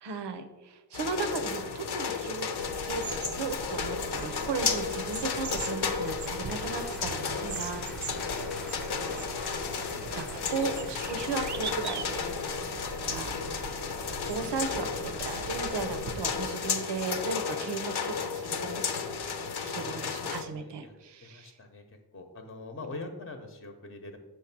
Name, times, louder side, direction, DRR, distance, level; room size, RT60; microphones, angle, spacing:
voice 1, 0.0-2.5 2.8-3.0 3.4-8.5 9.1-9.3 10.1-12.5 13.1-13.4 14.0-19.2 19.6-21.6, right 5 dB, 80° right, 9 dB, 0.8 m, -36 dB
sound 1, 0.9-20.4, left 6 dB, 70° left, 0.8 m, -33 dB
sound 2, 2.6-16.5, right 5 dB, 45° right, 0.5 m, -41 dB
Applause, 3.9-13.0, equal, ahead, 0.7 m, -51 dB
voice 2, 19.7-20.9 21.2-21.8 22.1-24.2, left 2 dB, 30° left, 5 dB, 0.8 m, -44 dB
6.4 x 3.2 x 5.9 m, 1.1 s
cardioid pair, 80°, 41 cm